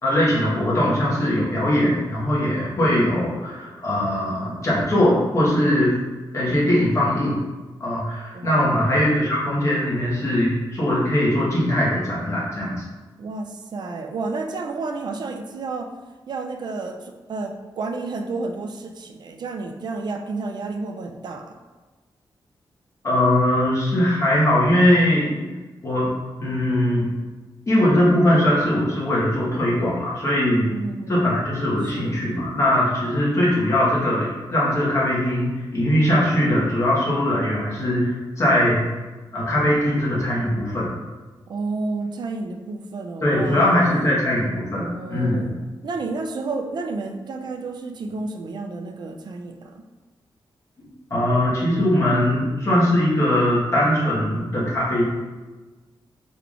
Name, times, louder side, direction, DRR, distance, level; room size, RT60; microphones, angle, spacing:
voice 1, 0.0-5.9 6.3-7.4 7.8-12.8 23.0-25.4 25.8-26.1 26.4-27.1 27.7-30.7 31.1-38.8 39.3-40.9 43.2-45.5 51.1-55.0, left 1 dB, 35° left, -7 dB, 1.2 m, -20 dB
voice 2, 8.3-8.7 13.2-15.9 16.3-21.5 30.7-31.2 31.9-32.1 41.5-43.8 44.8-45.5 45.8-49.8, right 3 dB, 55° right, 4 dB, 0.4 m, -31 dB
4.5 x 3.5 x 2.5 m, 1.3 s
wide cardioid pair, 155°, 9 cm